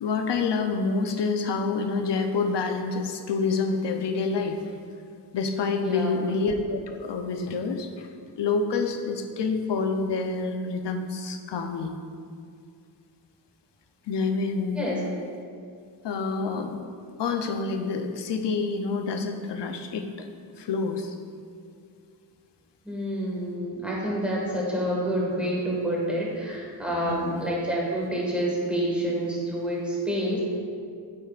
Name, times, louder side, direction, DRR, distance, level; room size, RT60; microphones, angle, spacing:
voice 1, 0.0-4.8 5.3-8.1 8.4-11.9 14.1-14.9 16.0-16.8 17.2-20.1 20.6-21.1 27.0-27.4, left 4 dB, 75° left, 5 dB, 0.7 m, -27 dB
voice 2, 5.8-6.3 14.8-15.0 22.8-30.4, right 1 dB, 5° right, -5 dB, 1.7 m, -28 dB
8.7 x 7.6 x 2.4 m, 2.2 s
wide cardioid pair, 160°, 42 cm